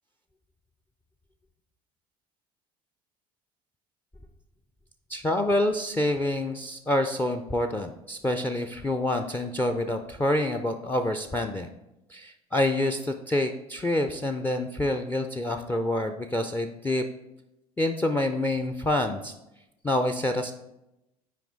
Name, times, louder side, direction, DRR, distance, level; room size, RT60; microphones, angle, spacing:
voice 1, 5.1-11.7 12.1-17.0 17.8-19.3 19.8-20.5, left 1 dB, 10° left, 7 dB, 0.5 m, -27 dB
9.0 x 4.9 x 3.8 m, 0.91 s
figure-of-eight pair, 65°, 19 cm